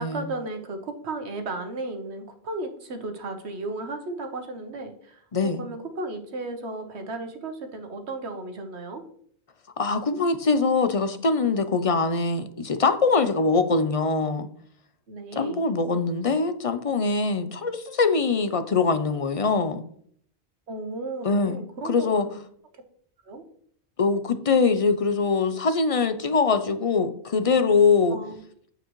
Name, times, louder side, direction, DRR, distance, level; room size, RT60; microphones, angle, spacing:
voice 1, 0.0-9.0 15.1-15.6 20.7-22.3 23.3-23.4 28.1-28.4, right 2 dB, 75° right, 6 dB, 1.4 m, -34 dB
voice 2, 5.3-5.6 9.8-14.5 15.3-19.8 21.2-21.6 21.8-22.3 24.0-28.2, left 4 dB, 40° left, 10 dB, 0.6 m, -23 dB
9.0 x 7.8 x 3.1 m, 0.62 s
omnidirectional pair, 1.1 m